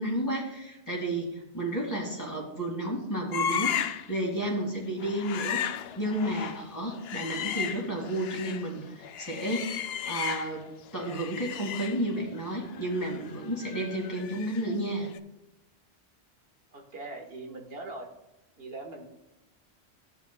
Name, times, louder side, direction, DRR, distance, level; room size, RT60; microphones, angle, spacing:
voice 1, 0.0-10.7 10.9-15.1, right 1 dB, 15° left, -2 dB, 2.2 m, -32 dB
sound 1, 3.3-4.1 4.4-4.6 5.0-8.7 9.0-10.7 11.0-14.8 15.0-15.2, left 8 dB, 70° left, 0.8 m, -35 dB
voice 2, 16.7-18.1 18.6-19.0, right 2 dB, 60° right, 1 dB, 1.6 m, -41 dB
14.5 x 7.2 x 2.3 m, 0.94 s
omnidirectional pair, 1.1 m